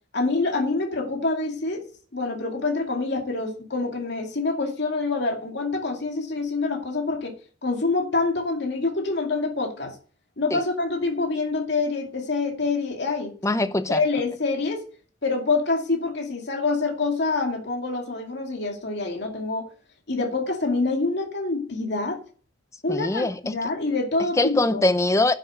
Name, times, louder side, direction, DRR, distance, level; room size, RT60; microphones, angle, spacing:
voice 1, 0.1-1.9 2.1-7.3 7.6-10.0 10.4-13.3 13.9-14.8 15.2-19.7 20.1-22.2 22.8-24.8, left 3 dB, 65° left, 2.4 m, -26 dB
voice 2, 13.4-14.0 22.9-23.6 24.4-25.3, left 2 dB, 15° left, 0.6 m, -22 dB
10.0 x 6.4 x 7.9 m
head